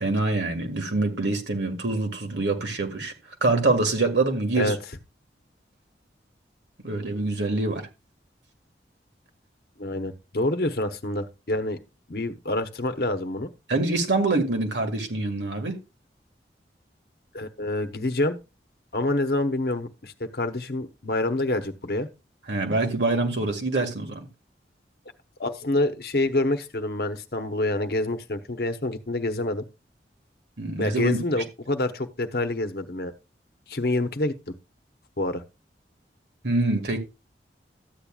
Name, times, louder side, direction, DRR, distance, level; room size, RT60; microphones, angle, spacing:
voice 1, 0.0-3.1 3.4-4.7 6.8-7.8 13.7-15.8 22.5-24.2 30.6-31.2 36.4-37.0, right 2 dB, 85° right, 1.8 m, -25 dB
voice 2, 9.8-11.8 12.1-13.5 17.3-18.4 18.9-22.1 25.4-29.6 30.8-33.1 33.7-34.5 35.2-35.4, left 2 dB, 60° left, 1.0 m, -27 dB
13.0 x 8.7 x 2.4 m
head